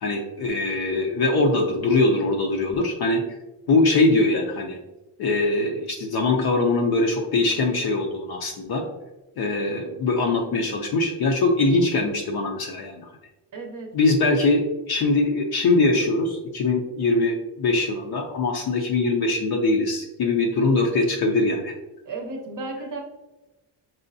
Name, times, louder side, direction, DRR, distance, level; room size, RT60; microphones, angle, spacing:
voice 1, 0.0-3.2 3.7-4.8 5.2-8.8 9.4-13.1 13.9-21.7, left 2 dB, 50° left, 1 dB, 0.5 m, -22 dB
voice 2, 13.5-13.9 22.0-23.0, right 3 dB, 40° right, 1 dB, 0.7 m, -33 dB
5.5 x 3.1 x 2.6 m, 1.0 s
cardioid pair, 160°, 48 cm